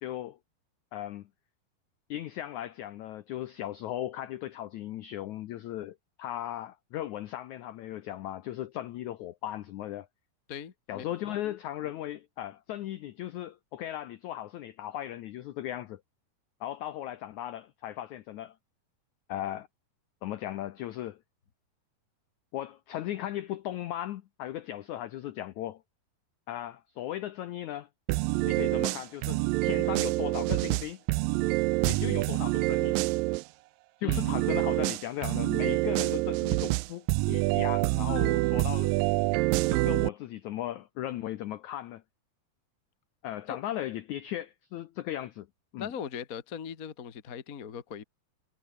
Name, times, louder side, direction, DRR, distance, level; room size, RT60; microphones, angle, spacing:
voice 1, 0.0-0.4 0.9-1.3 2.1-10.1 10.9-16.0 16.6-18.6 19.3-19.7 20.2-21.2 22.5-25.8 26.5-27.9 28.4-31.0 31.9-33.0 34.0-38.9 39.7-42.0 43.2-45.5 45.7-45.9, left 13 dB, 80° left, 1.7 m, -37 dB
voice 2, 10.5-11.4 34.0-34.3 43.5-43.6 45.8-48.0, left 7 dB, 60° left, 0.9 m, -40 dB
sound 1, 28.1-33.4 34.1-40.1, right 21 dB, 85° right, 2.0 m, -27 dB
omnidirectional pair, 4.5 m